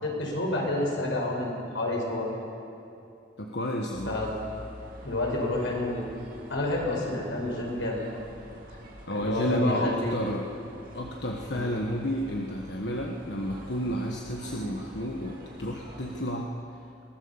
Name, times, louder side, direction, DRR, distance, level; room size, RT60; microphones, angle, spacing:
voice 1, 0.0-2.3 4.0-4.4 5.0-6.1 6.5-8.0 9.1-10.2 11.5-11.7, left 1 dB, 85° left, -1 dB, 5.3 m, -29 dB
voice 2, 3.4-4.2 9.1-10.5 10.9-16.5, equal, 65° left, 0 dB, 1.5 m, -31 dB
sound 1, 3.9-16.2, equal, 45° right, 3.0 m, -47 dB
22.5 x 17.5 x 7.2 m, 2.7 s
head